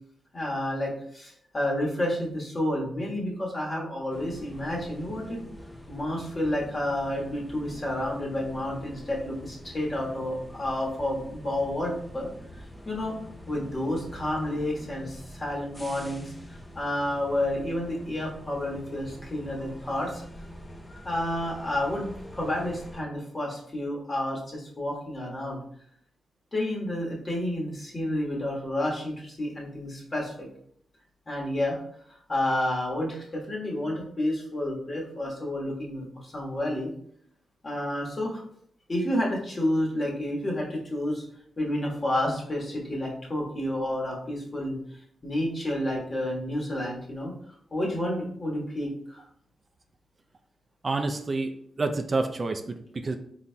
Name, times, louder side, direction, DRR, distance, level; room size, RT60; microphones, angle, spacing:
voice 1, 0.3-5.4 5.9-12.3 12.8-13.1 13.5-20.2 20.9-25.6 26.5-30.5 31.3-31.8 32.3-36.9 37.6-38.4 38.9-41.2 41.6-44.8 45.2-47.3 47.7-49.2, left 1 dB, 35° left, -2 dB, 1.4 m, -30 dB
sound 1, 4.1-23.0, equal, 20° left, 0.6 m, -45 dB
voice 2, 50.8-53.2, right 3 dB, 40° right, 6 dB, 0.4 m, -29 dB
4.1 x 3.8 x 2.2 m, 0.65 s
cardioid pair, 80°, 0 cm